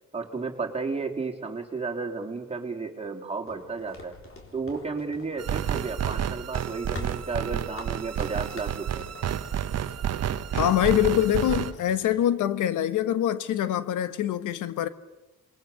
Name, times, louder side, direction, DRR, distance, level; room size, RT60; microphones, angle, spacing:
voice 1, 0.1-4.2 4.5-9.1, right 4 dB, 20° right, 3.5 m, -33 dB
sound 1, 3.5-12.2, left 2 dB, 45° left, 4.4 m, -46 dB
sound 2, 5.4-11.7, right 9 dB, 55° right, 1.0 m, -30 dB
voice 2, 10.5-14.9, left 11 dB, 85° left, 1.4 m, -24 dB
27.0 x 21.5 x 6.9 m
cardioid pair, 90°, 30 cm